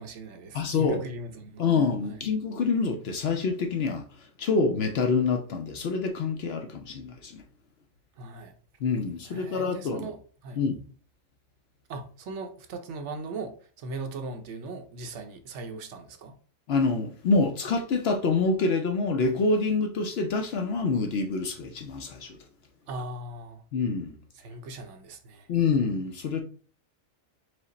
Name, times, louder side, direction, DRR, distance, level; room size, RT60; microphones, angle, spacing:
voice 1, 0.0-2.2 8.2-8.5 9.3-10.6 11.9-16.3 22.9-23.6 24.4-25.5, right 2 dB, 70° right, 0.9 m, -39 dB
voice 2, 0.5-1.0 1.6-4.0 4.4-7.4 8.8-10.1 10.6-10.8 16.7-22.4 23.7-24.2 25.5-26.4, left 4 dB, 65° left, 0.7 m, -26 dB
4.9 x 2.0 x 3.9 m
omnidirectional pair, 1.3 m